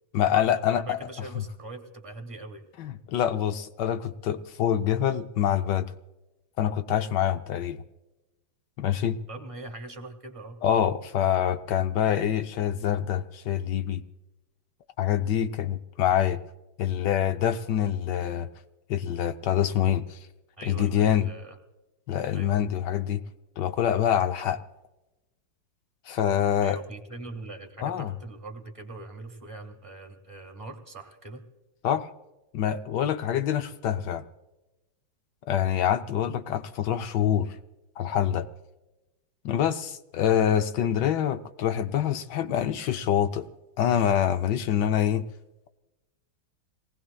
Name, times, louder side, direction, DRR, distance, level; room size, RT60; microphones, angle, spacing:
voice 1, 0.1-1.0 1.3-1.4 2.8-5.9 6.6-7.8 8.8-9.2 10.6-14.0 15.0-16.4 16.8-18.5 18.9-20.2 20.6-21.3 22.1-23.2 23.6-24.6 26.1-26.8 27.8-28.1 31.8-32.1 32.5-34.2 35.5-37.5 38.0-38.5 39.4-43.5 43.8-45.2, left 10 dB, 70° left, 9 dB, 1.1 m, -25 dB
voice 2, 0.7-2.7 9.3-10.6 20.6-21.6 22.3-22.6 26.6-31.4, right 2 dB, 20° right, 3 dB, 1.3 m, -42 dB
27.0 x 19.5 x 2.3 m, 1.0 s
omnidirectional pair, 2.3 m